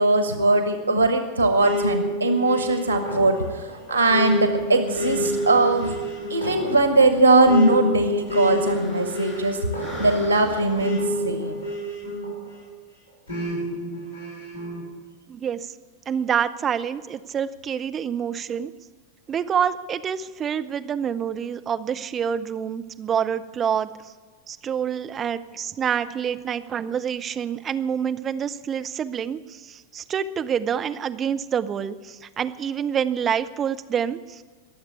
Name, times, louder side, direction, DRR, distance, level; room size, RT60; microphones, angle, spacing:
voice 1, 0.0-5.9 6.3-11.6, right 2 dB, 90° left, 6 dB, 1.2 m, -20 dB
sound 1, 1.6-12.7 13.3-14.8, equal, 90° right, 6.8 m, -29 dB
sound 2, 2.9-12.2, equal, 25° left, 5.8 m, -45 dB
voice 2, 15.3-15.7 16.1-18.7 19.3-23.9 24.5-34.4, right 8 dB, 25° right, 10 dB, 0.7 m, -27 dB
22.0 x 7.4 x 8.4 m, 1.4 s
figure-of-eight pair, 90°, 0 cm